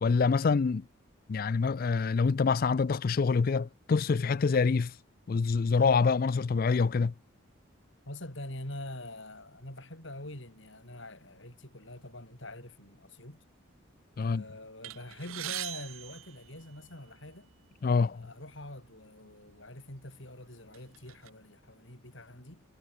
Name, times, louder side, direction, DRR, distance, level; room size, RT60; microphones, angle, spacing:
voice 1, 0.0-0.8 1.3-4.9 5.3-7.1 14.2-14.4 17.8-18.2, left 4 dB, 45° left, 0.4 m, -26 dB
voice 2, 8.1-13.4 14.2-17.5 18.1-22.6, left 1 dB, 65° left, 7.9 m, -45 dB
sound 1, 14.8-17.2 18.0-18.1 18.5-18.6 19.5-19.6 20.1-21.3, right 14 dB, 85° right, 0.8 m, -41 dB
head